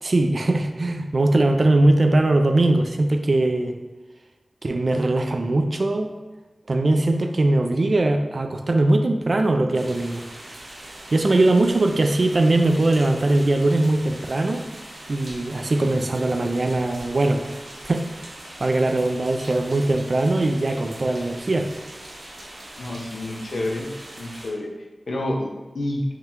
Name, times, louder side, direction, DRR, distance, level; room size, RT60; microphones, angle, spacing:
voice 1, 0.0-3.8 4.6-6.1 6.7-10.3 11.1-14.7 15.1-17.5 17.9-18.2 18.6-21.7, right 2 dB, 60° right, 5 dB, 0.3 m, -20 dB
sound 1, 9.7-24.5, right 1 dB, 90° right, 0.8 m, -41 dB
voice 2, 22.8-23.9 24.2-24.7 25.1-26.0, left 1 dB, 80° left, 2 dB, 0.5 m, -29 dB
4.4 x 2.2 x 3.6 m, 1.2 s
wide cardioid pair, 65°, 0 cm